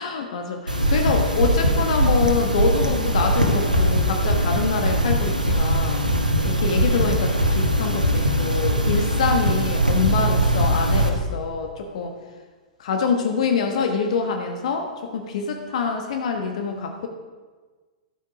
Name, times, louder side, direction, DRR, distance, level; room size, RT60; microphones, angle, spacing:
voice 1, 0.0-6.0 6.4-12.2 12.8-17.1, left 5 dB, 55° left, 4 dB, 1.1 m, -25 dB
sound 1, 0.7-11.1, right 1 dB, 90° right, 1.4 m, -21 dB
11.5 x 8.5 x 4.9 m, 1.4 s
figure-of-eight pair, 105°, 4 cm